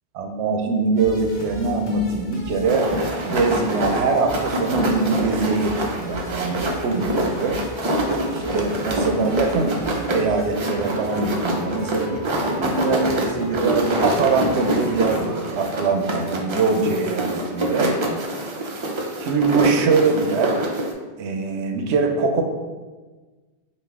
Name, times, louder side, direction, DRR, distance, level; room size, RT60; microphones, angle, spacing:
voice 1, 0.1-2.9 3.2-7.6 8.3-9.8 10.1-12.2 12.6-18.0 19.2-20.6 21.2-22.4, right 4 dB, 85° right, 4 dB, 0.9 m, -22 dB
sound 1, 1.0-15.1, equal, 60° left, 1.1 m, -37 dB
sound 2, 2.6-20.9, right 1 dB, 50° right, 0.3 m, -26 dB
5.3 x 2.4 x 3.5 m, 1.3 s
omnidirectional pair, 1.1 m